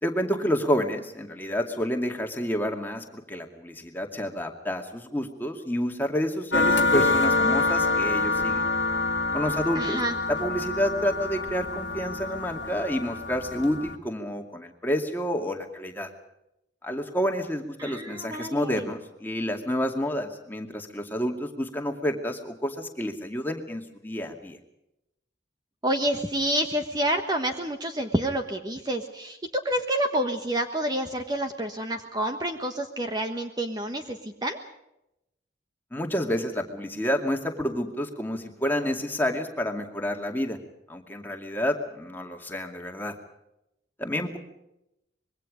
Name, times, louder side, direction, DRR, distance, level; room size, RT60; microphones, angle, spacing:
voice 1, 0.0-8.7 9.3-10.0 10.3-16.1 16.8-24.6 35.9-40.6 40.9-43.1 44.0-44.4, equal, 10° left, 3 dB, 2.3 m, -29 dB
sound 1, 6.5-14.0, left 3 dB, 85° left, 1.8 m, -26 dB
voice 2, 9.7-10.1 17.8-18.9 25.8-34.6, right 1 dB, 20° right, 5 dB, 1.3 m, -28 dB
25.5 x 22.0 x 5.2 m, 0.86 s
head